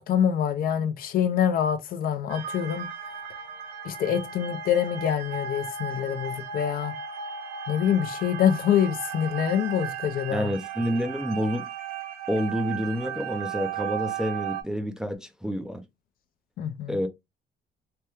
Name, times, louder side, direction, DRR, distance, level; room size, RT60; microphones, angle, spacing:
voice 1, 0.0-2.9 3.8-6.9 7.7-10.5 16.6-17.0, left 9 dB, 60° left, 0.6 m, -25 dB
sound 1, 2.3-14.6, right 7 dB, 85° right, 0.8 m, -35 dB
voice 2, 10.3-11.7 12.3-15.8 16.9-17.1, equal, 5° right, 0.4 m, -28 dB
3.4 x 2.2 x 2.9 m
cardioid pair, 110°, 17 cm